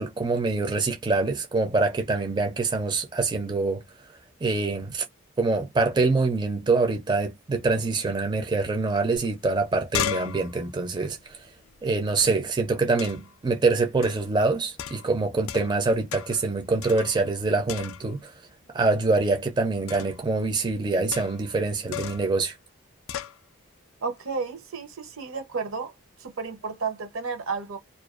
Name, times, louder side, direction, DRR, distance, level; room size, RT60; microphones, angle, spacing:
voice 1, 0.0-3.8 4.4-5.0 5.4-11.2 11.8-18.3 18.7-22.5, right 3 dB, 20° right, 0.4 m, -25 dB
sound 1, 9.2-9.3 9.5-12.3 13.0-13.4 14.0-14.3 14.8-15.8 16.1-16.5 16.8-17.4 17.7-18.3 19.9-20.2 21.1-21.5 21.9-22.3 23.1-23.4, left 11 dB, 75° left, 0.3 m, -35 dB
voice 2, 24.0-25.9 26.2-27.8, right 4 dB, 75° right, 0.7 m, -32 dB
2.4 x 2.2 x 2.4 m
head